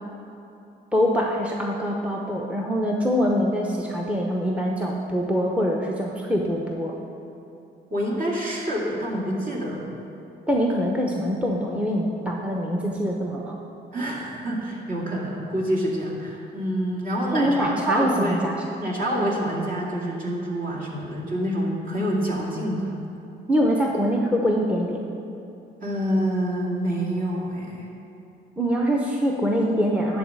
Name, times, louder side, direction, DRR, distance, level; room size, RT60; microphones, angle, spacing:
voice 1, 0.9-6.9 10.5-13.6 17.3-18.6 23.5-25.0 28.6-30.2, equal, 5° right, -1 dB, 0.8 m, -24 dB
voice 2, 7.9-10.0 13.9-18.4 18.8-23.0 25.8-27.9, equal, 45° right, -3 dB, 2.3 m, -27 dB
10.5 x 4.0 x 7.6 m, 2.9 s
cardioid pair, 90°, 20 cm